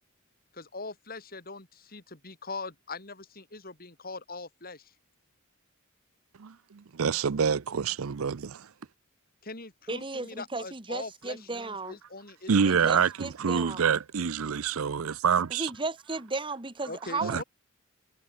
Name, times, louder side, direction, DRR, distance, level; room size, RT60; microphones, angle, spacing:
voice 1, 0.5-4.9 9.4-12.8 16.9-17.4, left 3 dB, 45° left, 5.0 m, -42 dB
voice 2, 6.4-8.7 12.5-15.7 17.2-17.4, right 6 dB, 75° right, 0.6 m, -27 dB
voice 3, 9.9-12.0 12.7-13.8 15.6-17.4, right 3 dB, 25° right, 1.7 m, -35 dB
head